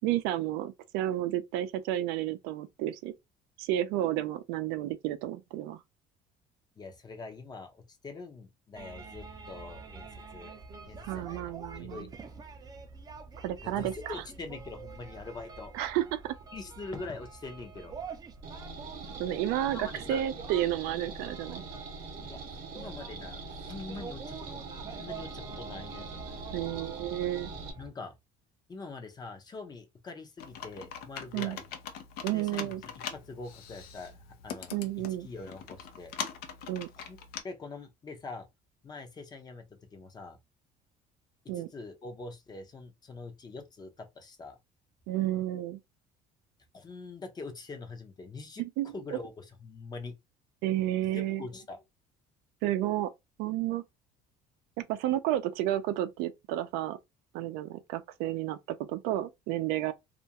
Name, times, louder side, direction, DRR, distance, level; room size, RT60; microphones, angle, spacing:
voice 1, 0.0-3.1 3.6-5.8 11.1-12.1 13.4-14.1 15.7-16.4 19.2-21.6 26.5-27.5 31.3-31.6 32.2-32.8 34.7-35.3 36.7-36.9 41.5-41.7 45.1-45.8 48.6-49.2 50.6-51.4 52.6-53.1 53.4-53.8 54.8-57.0 57.3-59.9, right 13 dB, 85° right, 0.4 m, -31 dB
voice 2, 6.8-10.5 10.9-12.1 13.6-15.7 16.5-17.9 19.7-20.2 22.3-22.4 22.7-26.1 27.8-28.2 28.7-31.6 32.2-32.7 33.1-34.7 35.2-36.1 37.1-37.2 37.4-38.5 38.8-39.6 39.9-40.4 41.5-44.6 46.7-48.6 48.9-50.1 51.1-51.8, left 3 dB, 25° left, 0.6 m, -44 dB
sound 1, 8.8-27.9, right 4 dB, 25° right, 0.4 m, -46 dB
sound 2, 18.4-27.7, right 3 dB, 65° right, 0.8 m, -43 dB
Computer keyboard, 30.4-37.4, left 7 dB, 70° left, 0.6 m, -42 dB
2.4 x 2.2 x 2.8 m
cardioid pair, 120°, 16 cm